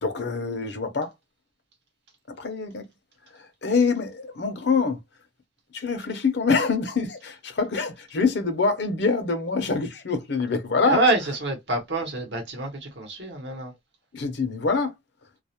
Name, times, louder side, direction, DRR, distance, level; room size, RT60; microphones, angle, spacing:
voice 1, 0.0-1.1 2.4-2.8 3.6-5.0 5.7-11.4 14.1-14.9, left 4 dB, 60° left, 0.6 m, -25 dB
voice 2, 10.8-12.7 13.0-13.7, right 2 dB, 65° right, 0.9 m, -26 dB
2.3 x 2.0 x 2.8 m
head